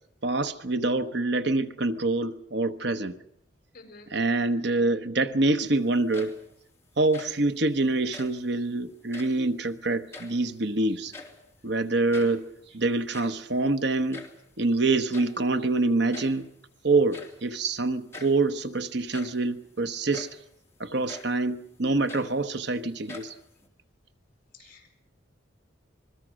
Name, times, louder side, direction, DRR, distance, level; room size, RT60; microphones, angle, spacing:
voice 1, 0.2-3.2 4.1-6.4 7.0-11.1 11.6-12.5 12.7-14.2 14.6-16.5 16.8-20.3 20.8-23.3, right 2 dB, 60° right, 1.1 m, -26 dB
voice 2, 3.7-4.1 24.5-25.0, left 3 dB, 45° left, 6.5 m, -50 dB
sound 1, 5.9-6.6 7.0-7.5 8.0-8.5 9.0-9.5 9.9-10.7 10.9-11.6 11.8-11.9 12.1-12.5 12.9-14.5 15.1-15.5 16.1-16.5 17.1-17.5 18.1-18.4 18.9-19.5 20.1-20.5 21.1-21.4 21.8-22.7 23.1-23.7, left 3 dB, 15° left, 3.4 m, -45 dB
27.0 x 22.0 x 6.4 m
head